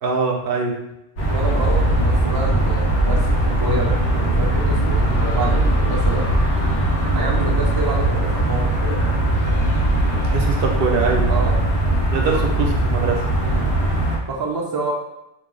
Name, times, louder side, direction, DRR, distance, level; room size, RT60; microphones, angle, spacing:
voice 1, 0.0-0.8 10.2-11.3 12.1-13.2, right 4 dB, 65° right, 1 dB, 0.7 m, -22 dB
sound 1, 1.2-14.2, right 1 dB, 85° left, 1.2 m, -19 dB
voice 2, 1.3-6.3 7.1-9.2 10.1-10.3 11.3-11.6 13.4-13.8 14.3-14.9, right 2 dB, 35° right, -1 dB, 0.4 m, -28 dB
2.8 x 2.0 x 3.8 m, 0.87 s
omnidirectional pair, 1.1 m